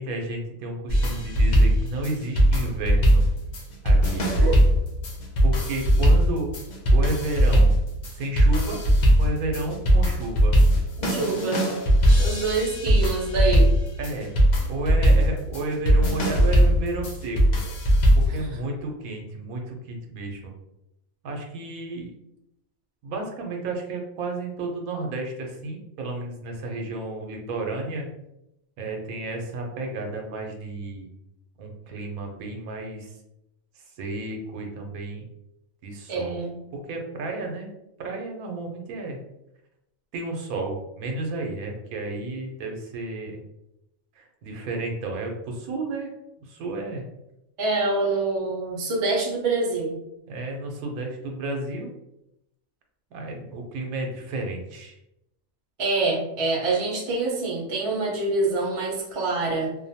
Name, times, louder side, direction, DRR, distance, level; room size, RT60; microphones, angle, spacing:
voice 1, 0.0-3.2 3.8-4.3 5.4-6.5 6.9-7.7 8.1-8.8 9.2-10.6 12.1-12.3 14.0-14.3 14.7-17.4 18.2-20.5 21.2-22.1 23.0-28.1 28.8-31.1 31.6-33.1 34.0-35.2 35.8-36.4 36.9-37.7 38.0-39.2 40.1-43.4 44.2-46.1 46.5-47.0 50.3-51.9 53.1-55.0, right 2 dB, 90° right, 2 dB, 1.0 m, -32 dB
sound 1, 0.9-18.4, equal, 65° left, 0.4 m, -20 dB
voice 2, 11.0-11.6 12.2-13.7 18.3-18.5 36.1-36.5 47.6-49.9 55.8-59.8, right 3 dB, 45° right, -2 dB, 0.4 m, -26 dB
2.5 x 2.1 x 2.6 m, 0.86 s
omnidirectional pair, 1.5 m